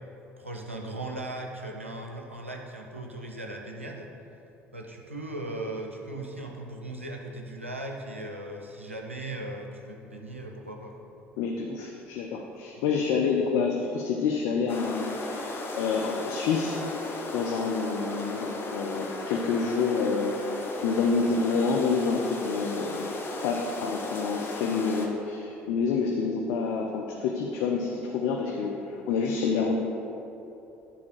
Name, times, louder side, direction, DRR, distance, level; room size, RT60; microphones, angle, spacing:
voice 1, 0.4-4.1 4.7-11.1, right 1 dB, 85° right, 1 dB, 0.6 m, -38 dB
voice 2, 11.4-16.7 17.3-20.3 20.8-23.1 23.4-29.8, left 5 dB, 60° left, 0 dB, 0.5 m, -28 dB
sound 1, 14.7-25.1, left 2 dB, 35° left, 0.9 m, -36 dB
9.7 x 3.6 x 4.6 m, 2.9 s
figure-of-eight pair, 55°, 7 cm